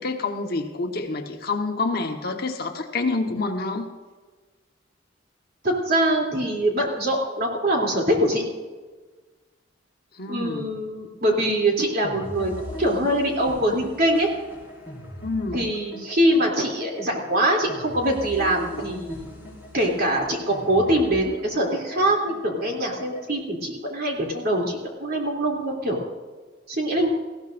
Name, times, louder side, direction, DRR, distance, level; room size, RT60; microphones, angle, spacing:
voice 1, 0.0-3.9 10.2-10.7 15.2-15.6, left 3 dB, 50° left, 3 dB, 1.2 m, -27 dB
voice 2, 5.6-8.4 10.3-14.3 15.5-19.3 19.7-26.0 26.7-27.1, right 1 dB, 50° right, -1 dB, 2.9 m, -23 dB
sound 1, 12.0-23.3, left 1 dB, 10° right, 4.3 m, -40 dB
19.5 x 15.5 x 2.6 m, 1.3 s
head